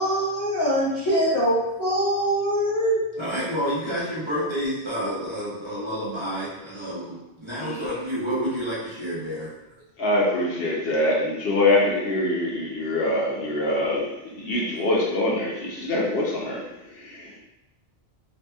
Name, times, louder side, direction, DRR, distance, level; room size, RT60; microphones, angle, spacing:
voice 1, 0.0-3.0, equal, 25° left, -11 dB, 0.4 m, -23 dB
voice 2, 3.2-9.5, equal, 30° right, -10 dB, 0.8 m, -29 dB
voice 3, 7.6-8.0 10.0-17.4, left 1 dB, 65° left, -3 dB, 0.8 m, -24 dB
2.7 x 2.6 x 2.2 m, 0.95 s
omnidirectional pair, 1.1 m